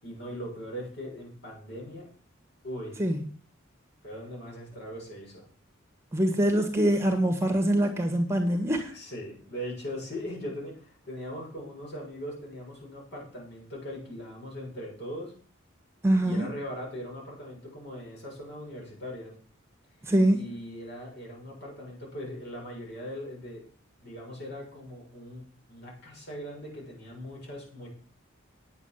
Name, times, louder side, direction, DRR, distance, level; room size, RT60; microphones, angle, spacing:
voice 1, 0.0-2.1 2.6-3.0 4.0-5.4 8.9-15.3 16.2-19.3 20.0-23.7 24.0-27.9, equal, 55° left, -2 dB, 7.0 m, -40 dB
voice 2, 6.1-8.9 16.0-16.5 20.0-20.4, right 1 dB, 15° right, 5 dB, 1.5 m, -24 dB
9.8 x 8.4 x 7.3 m, 0.43 s
head